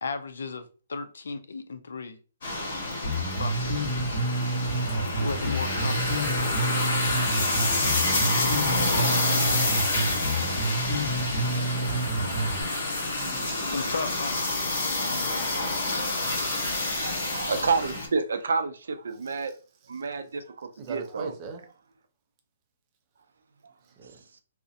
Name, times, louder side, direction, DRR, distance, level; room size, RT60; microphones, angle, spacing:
voice 1, 0.0-2.2 3.4-4.1 5.2-6.8 10.3-10.4 13.7-14.4, left 4 dB, 85° left, 0.4 m, -35 dB
sound 1, 2.4-18.1, left 2 dB, 50° left, 1.2 m, -28 dB
Bass guitar, 3.0-12.6, right 2 dB, 35° left, 1.0 m, -29 dB
voice 2, 13.1-13.5 19.2-19.4 20.8-21.6 23.8-24.2, right 5 dB, 25° right, 0.5 m, -40 dB
voice 3, 17.0-19.6 19.9-21.3 24.3-24.4, right 4 dB, 75° right, 0.4 m, -29 dB
2.6 x 2.1 x 2.5 m
hypercardioid pair, 165°, 0 cm